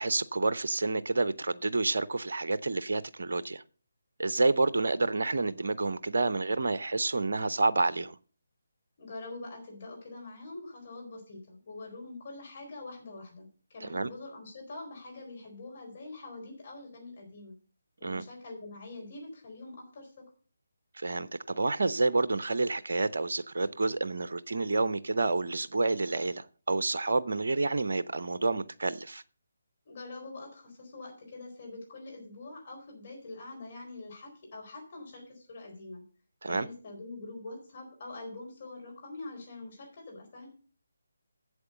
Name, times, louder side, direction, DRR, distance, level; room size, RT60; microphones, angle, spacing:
voice 1, 0.0-3.6 4.2-8.2 13.8-14.1 18.0-18.2 20.9-29.2 36.4-36.7, right 3 dB, 60° right, 0.6 m, -29 dB
voice 2, 9.0-17.6 18.0-20.2 29.9-36.0 36.5-40.5, left 2 dB, 40° left, 4.4 m, -44 dB
8.0 x 7.8 x 6.7 m
figure-of-eight pair, 150°, 0 cm